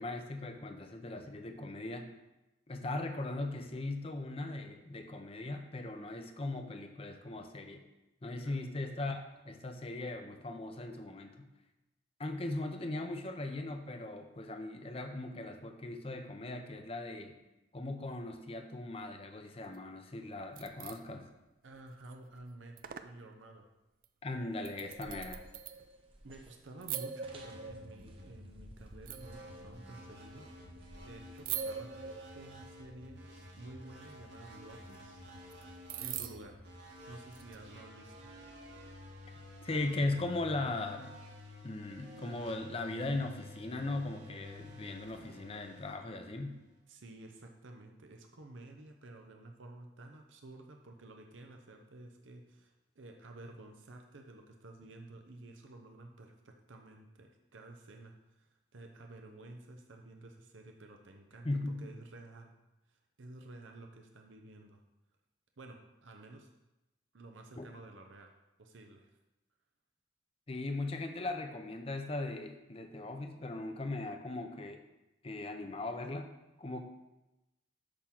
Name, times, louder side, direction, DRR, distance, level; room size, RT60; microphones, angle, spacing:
voice 1, 0.0-2.1 2.7-7.8 8.2-11.5 12.2-17.3 17.7-21.3 24.2-25.4 39.6-41.1 41.6-46.6 61.4-61.9 67.6-67.7 70.5-74.8 75.2-76.3 76.6-76.8, left 2 dB, 30° left, 6 dB, 0.6 m, -38 dB
sound 1, 20.3-21.0 21.7-22.1 22.4-22.5 22.8-23.2 24.0-24.1 24.6-26.1 26.8-28.3 29.1-30.1 31.4-32.8 34.7-34.8 35.5-35.6 35.9-36.6 37.3-37.6, right 8 dB, 45° right, 0.3 m, -43 dB
voice 2, 21.6-22.8 23.0-23.7 26.2-30.5 31.0-33.2 33.5-35.2 36.0-36.6 37.0-38.3 46.9-62.5 62.9-64.8 65.6-66.5 67.1-68.3 68.6-69.2, right 2 dB, 90° right, 3 dB, 0.7 m, -52 dB
sound 2, 24.9-31.6, right 1 dB, 30° right, 0.7 m, -58 dB
sound 3, 27.2-46.8, left 1 dB, 65° right, 1.6 m, -51 dB
8.6 x 3.7 x 6.0 m, 0.99 s
head